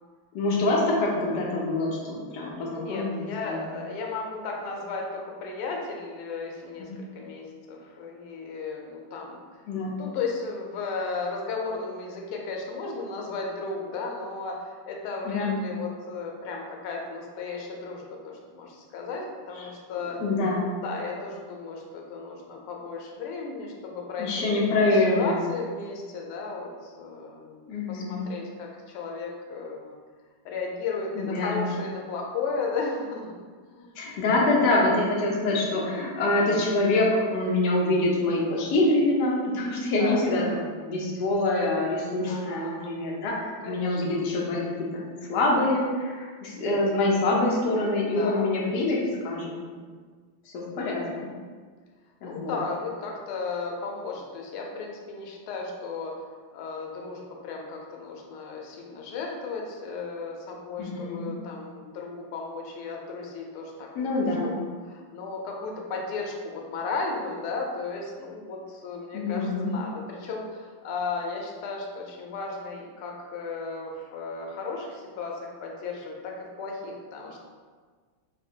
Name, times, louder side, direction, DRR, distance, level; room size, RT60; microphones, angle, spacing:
voice 1, 0.3-3.7 6.8-7.0 9.7-10.0 15.2-15.6 19.5-19.7 20.0-20.7 24.2-25.4 27.7-28.3 31.1-31.8 34.0-44.7 44.9-45.0 45.3-49.0 49.2-49.8 50.5-51.3 52.2-52.6 60.8-61.2 63.9-64.6 69.1-69.7, left 2 dB, 65° left, -4 dB, 1.2 m, -25 dB
voice 2, 2.7-6.9 7.1-9.4 10.0-20.2 20.5-24.6 25.1-30.0 30.4-33.4 33.7-34.0 36.4-36.5 40.0-40.5 42.3-43.0 43.6-44.0 48.1-48.6 48.9-49.0 50.8-51.0 52.2-56.1 56.5-64.6 64.9-76.3 76.6-77.5, left 4 dB, 85° left, 0 dB, 1.5 m, -35 dB
4.9 x 2.1 x 2.7 m, 1.5 s
omnidirectional pair, 2.3 m